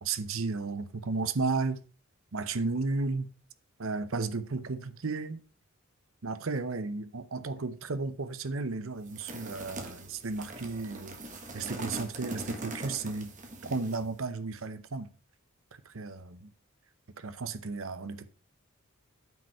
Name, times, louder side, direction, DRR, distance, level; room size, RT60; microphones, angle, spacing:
voice 1, 0.0-1.8 2.3-3.3 3.8-5.4 6.2-11.2 11.5-13.3 13.6-15.1 15.9-16.5 17.2-18.3, right 3 dB, 70° right, 0.8 m, -33 dB
sound 1, 9.0-14.1, right 1 dB, 35° right, 1.6 m, -42 dB
9.4 x 5.3 x 4.3 m
head